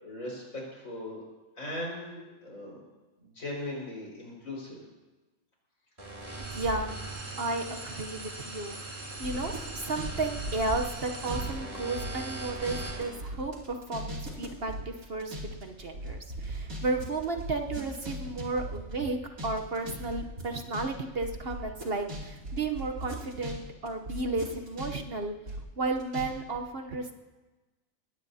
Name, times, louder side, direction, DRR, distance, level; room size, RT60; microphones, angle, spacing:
voice 1, 0.0-1.2 1.6-2.8 3.2-4.8, left 1 dB, 75° left, -2 dB, 5.4 m, -39 dB
sound 1, 6.0-13.1, right 2 dB, 25° right, 2.9 m, -39 dB
voice 2, 6.5-6.9 7.4-15.4 15.6-19.2 19.4-25.3 25.8-27.1, right 3 dB, 50° right, 4 dB, 1.0 m, -33 dB
sound 2, 9.2-11.5 11.8-23.6 23.9-26.3 26.5-26.6, right 1 dB, 85° right, 3.2 m, -39 dB
21.0 x 17.0 x 2.7 m, 1.2 s
omnidirectional pair, 1.4 m